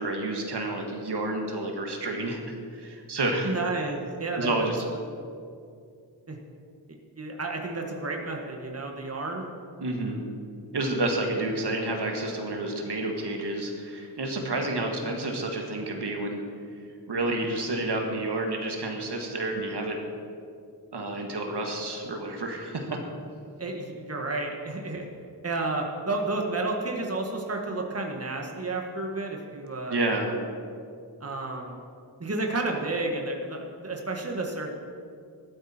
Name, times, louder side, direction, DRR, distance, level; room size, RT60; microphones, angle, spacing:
voice 1, 0.0-2.4 2.7-3.5 4.4-4.8 9.8-10.2 10.7-16.4 17.1-20.0 20.9-23.0 29.9-30.3, right 2 dB, 75° right, 2 dB, 1.8 m, -29 dB
voice 2, 3.4-4.5 6.3-6.4 7.1-9.4 23.6-25.0 25.4-30.0 31.2-31.8 32.2-34.7, right 2 dB, 35° right, 1 dB, 1.6 m, -31 dB
14.0 x 12.0 x 4.4 m, 2.4 s
wide cardioid pair, 65°, 40 cm